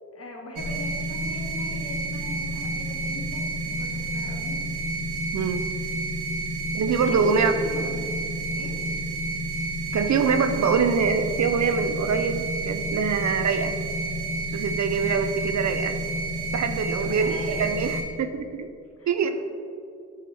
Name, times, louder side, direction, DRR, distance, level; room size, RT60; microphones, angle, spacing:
voice 1, 0.1-4.6 6.9-8.2 8.5-8.9 16.6-17.7 19.0-19.3, left 1 dB, 50° left, 0 dB, 1.5 m, -40 dB
sound 1, 0.5-18.0, right 2 dB, 90° right, 1.6 m, -30 dB
voice 2, 5.3-5.6 6.7-7.5 9.9-13.8 14.5-16.0 16.5-18.7 19.1-19.3, right 6 dB, 65° right, 8 dB, 0.6 m, -24 dB
8.3 x 5.6 x 3.5 m, 2.3 s
cardioid pair, 70°, 30 cm